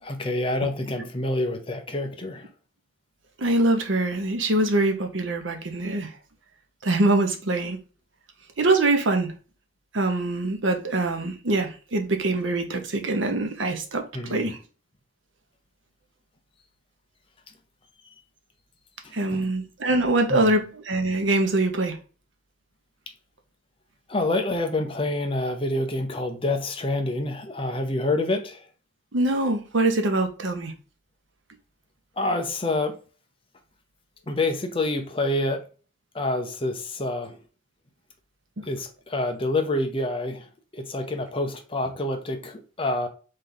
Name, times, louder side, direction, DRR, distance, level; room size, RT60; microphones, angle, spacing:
voice 1, 0.0-2.5 14.1-14.5 19.0-19.5 20.3-20.5 24.1-28.7 32.2-33.0 34.3-35.6 36.1-37.4 38.6-40.5 40.7-43.1, left 2 dB, 25° left, 0.7 m, -27 dB
voice 2, 3.4-6.1 6.8-7.8 8.6-9.3 9.9-14.0 14.3-14.6 19.1-22.0 29.1-30.7 38.6-38.7, right 2 dB, 75° right, 0.9 m, -24 dB
4.1 x 3.3 x 3.9 m
head